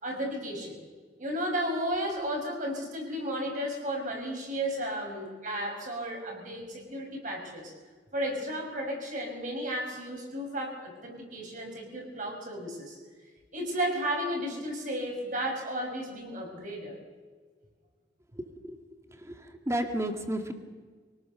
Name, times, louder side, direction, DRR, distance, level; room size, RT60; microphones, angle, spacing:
voice 1, 0.0-0.7 1.2-7.7 8.1-13.0 13.5-17.0, equal, 45° right, 1 dB, 6.1 m, -33 dB
voice 2, 18.3-18.8 19.1-20.5, right 1 dB, 15° right, 5 dB, 2.1 m, -33 dB
24.0 x 18.5 x 6.8 m, 1.5 s
head